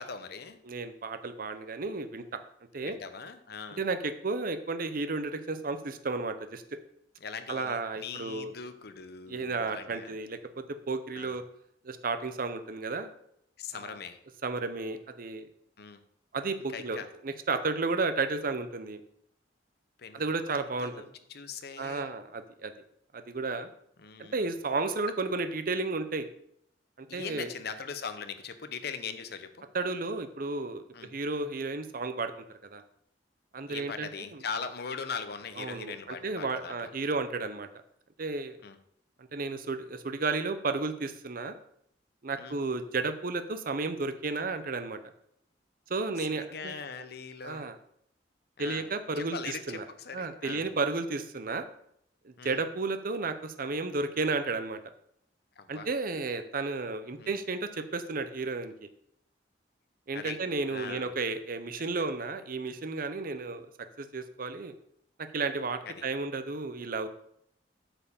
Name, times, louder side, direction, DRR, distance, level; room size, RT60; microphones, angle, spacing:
voice 1, 0.0-0.6 2.8-3.8 7.2-10.2 11.1-11.4 13.6-14.2 15.8-16.0 16.7-17.1 20.0-20.2 20.5-22.1 24.0-24.5 27.1-29.7 30.9-31.1 33.7-36.8 38.6-38.8 42.4-42.6 46.2-47.7 48.6-48.9 49.2-50.7 52.4-52.6 55.6-55.9 57.2-57.4 60.1-60.4 60.7-61.1 61.8-62.1 65.8-66.0, left 5 dB, 60° left, 9 dB, 0.9 m, -41 dB
voice 2, 0.7-2.2 2.7-3.0 3.8-6.6 7.5-8.5 9.3-11.4 11.8-13.1 13.7-14.0 14.4-15.5 16.3-19.0 20.1-20.9 21.8-22.7 23.1-23.7 24.2-26.3 27.0-27.5 29.7-32.3 32.6-32.8 33.5-34.4 35.6-37.7 38.2-38.6 39.2-41.5 42.2-45.0 45.9-46.8 47.4-47.7 48.6-49.8 50.1-51.6 52.2-54.8 55.7-58.9 60.1-63.7 64.0-64.7 65.3-67.1, right 3 dB, 55° right, 9 dB, 0.7 m, -33 dB
8.9 x 4.5 x 7.1 m, 0.71 s
head